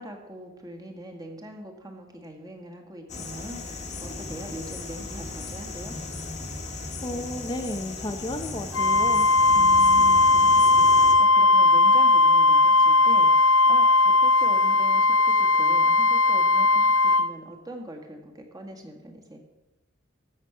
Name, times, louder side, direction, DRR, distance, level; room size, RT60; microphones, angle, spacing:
voice 1, 0.0-6.0 9.5-13.3 13.7-13.9 14.2-19.4, right 1 dB, 20° right, 3 dB, 1.6 m, -41 dB
sound 1, 3.1-11.1, left 3 dB, 40° left, 1.3 m, -37 dB
voice 2, 7.0-9.3, left 1 dB, 25° left, 5 dB, 0.6 m, -33 dB
Wind instrument woodwind instrument, 8.7-17.3, left 2 dB, 75° left, 0.5 m, -18 dB
14.0 x 6.3 x 5.9 m, 1.0 s
head